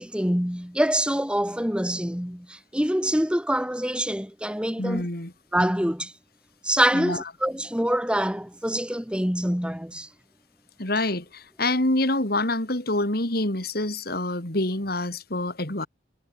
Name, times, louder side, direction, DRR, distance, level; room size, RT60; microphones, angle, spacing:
voice 1, 0.0-5.1 5.5-6.1 6.6-10.1, right 1 dB, 5° right, 3.0 m, -25 dB
voice 2, 4.8-5.3 6.9-7.2 10.8-15.9, left 2 dB, 55° left, 3.9 m, -26 dB
head